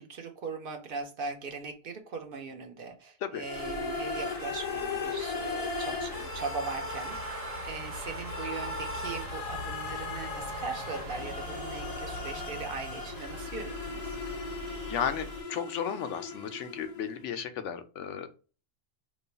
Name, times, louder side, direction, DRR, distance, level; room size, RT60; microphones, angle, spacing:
voice 1, 0.0-14.2, right 4 dB, 60° right, 5 dB, 0.7 m, -40 dB
sound 1, 3.4-17.2, left 3 dB, 45° left, 0.5 m, -37 dB
sound 2, 3.5-15.4, right 1 dB, 90° right, 1.5 m, -42 dB
voice 2, 14.9-18.3, left 8 dB, 85° left, 9 dB, 0.9 m, -34 dB
3.1 x 2.2 x 3.9 m, 0.36 s
omnidirectional pair, 1.2 m